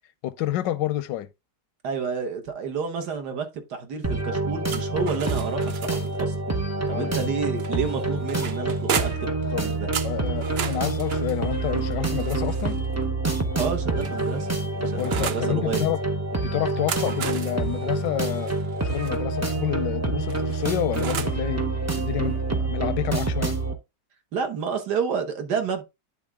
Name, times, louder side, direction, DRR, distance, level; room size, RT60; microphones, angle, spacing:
voice 1, 0.2-1.3 6.9-7.3 9.5-9.6 10.0-12.8 14.8-16.0 16.4-18.5 18.8-21.7 22.0-23.6, left 13 dB, 80° left, 1.3 m, -29 dB
voice 2, 1.8-6.4 6.9-9.9 13.6-14.5 14.9-15.8 24.3-25.8, right 6 dB, 70° right, 1.8 m, -30 dB
sound 1, 4.0-23.7, right 2 dB, 25° right, 0.3 m, -27 dB
sound 2, 4.7-6.2 7.6-9.4 9.9-12.8 13.7-15.5 16.6-19.2 20.3-21.4, right 7 dB, 85° right, 0.5 m, -34 dB
10.5 x 3.7 x 3.5 m
omnidirectional pair, 1.9 m